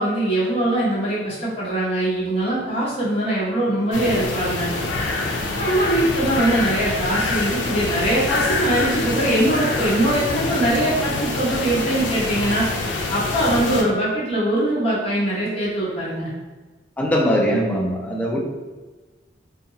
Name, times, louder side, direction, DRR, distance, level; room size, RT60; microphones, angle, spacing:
voice 1, 0.0-4.7 5.6-12.7 13.1-16.3, right 1 dB, 35° left, -7 dB, 0.9 m, -22 dB
sound 1, 3.9-13.8, left 3 dB, 85° left, 0.4 m, -25 dB
voice 2, 17.0-18.4, equal, 10° left, -2 dB, 0.4 m, -21 dB
2.8 x 2.2 x 2.7 m, 1.3 s
head